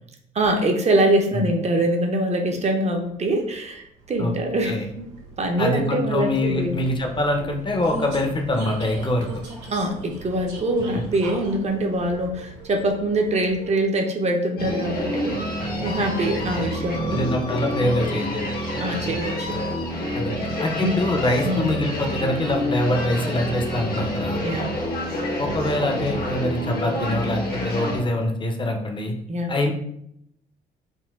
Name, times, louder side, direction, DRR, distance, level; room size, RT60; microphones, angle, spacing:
voice 1, 0.3-5.1 5.4-6.8 9.7-15.4 15.8-17.2 18.8-19.6 20.4-20.5 20.8-21.0 21.4-21.7 24.4-24.7 29.3-29.6, right 1 dB, 40° right, 3 dB, 0.7 m, -24 dB
Vehicle, 2.4-14.1, right 2 dB, 85° right, 0.7 m, -40 dB
voice 2, 5.6-9.3 17.1-18.3 20.1-20.3 20.6-24.4 25.4-29.1 29.5-29.7, left 1 dB, 30° left, 3 dB, 0.7 m, -24 dB
sound 1, 14.6-28.0, equal, 60° left, 0.9 m, -28 dB
3.8 x 2.1 x 2.4 m, 0.74 s
supercardioid pair, 60°, 18 cm